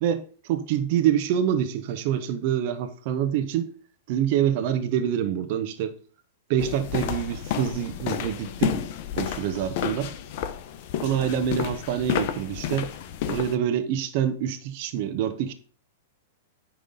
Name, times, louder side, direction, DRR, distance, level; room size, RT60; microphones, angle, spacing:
voice 1, 0.0-3.7 4.1-6.0 6.5-8.8 9.2-10.1 11.0-12.9 13.3-15.5, right 9 dB, 50° right, 1.0 m, -26 dB
sound 1, 6.6-13.6, left 10 dB, 55° left, 0.8 m, -31 dB
9.1 x 3.6 x 5.5 m
hypercardioid pair, 115°, 0 cm